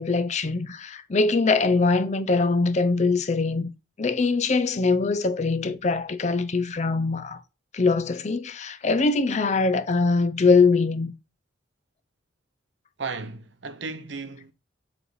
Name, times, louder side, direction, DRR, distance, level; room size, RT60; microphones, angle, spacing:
voice 1, 0.0-3.7 4.0-7.4 7.7-11.1, left 4 dB, 35° left, 0.5 m, -22 dB
voice 2, 13.0-14.5, right 4 dB, 65° right, 0.8 m, -35 dB
7.4 x 3.3 x 4.0 m
head